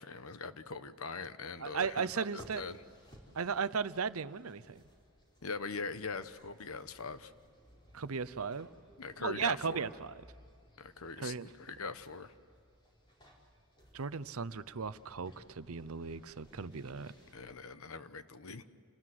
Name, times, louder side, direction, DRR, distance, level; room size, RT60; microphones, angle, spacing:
voice 1, 0.0-2.1 2.3-2.8 5.4-7.3 9.0-9.9 10.8-12.3 17.3-18.7, left 4 dB, 80° left, 12 dB, 1.1 m, -42 dB
voice 2, 1.6-2.6 3.3-4.6 7.9-8.7 9.2-10.1 11.2-11.5 13.9-17.1, right 5 dB, 85° right, 16 dB, 0.7 m, -36 dB
sound 1, 1.7-17.5, equal, 20° left, 4.4 m, -60 dB
29.0 x 19.5 x 7.8 m, 2.3 s
head